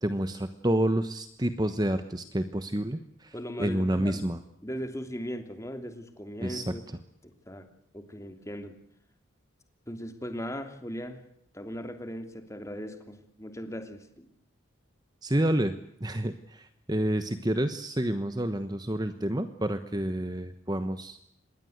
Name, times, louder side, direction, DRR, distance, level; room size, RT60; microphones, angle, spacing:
voice 1, 0.0-3.3 3.6-4.4 6.4-6.7 15.2-15.7 16.0-21.2, right 1 dB, 20° right, 10 dB, 1.1 m, -29 dB
voice 2, 3.3-4.2 4.6-6.8 7.2-7.7 7.9-8.7 9.9-11.2 11.5-14.3, equal, 15° left, 7 dB, 3.0 m, -38 dB
26.0 x 21.0 x 8.1 m, 0.73 s
head